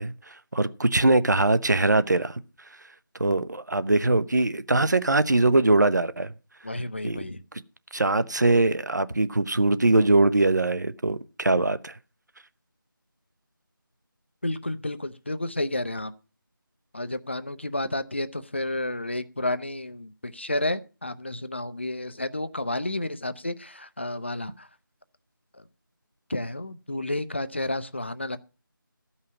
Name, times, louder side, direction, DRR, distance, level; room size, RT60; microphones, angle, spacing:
voice 1, 0.0-2.4 3.2-6.3 7.0-7.2 7.9-11.9, right 2 dB, 55° right, 0.7 m, -22 dB
voice 2, 6.6-7.4 14.4-16.1 16.9-24.7 26.3-28.4, left 1 dB, 30° left, 0.5 m, -31 dB
14.0 x 5.7 x 7.2 m
figure-of-eight pair, 165°, 12 cm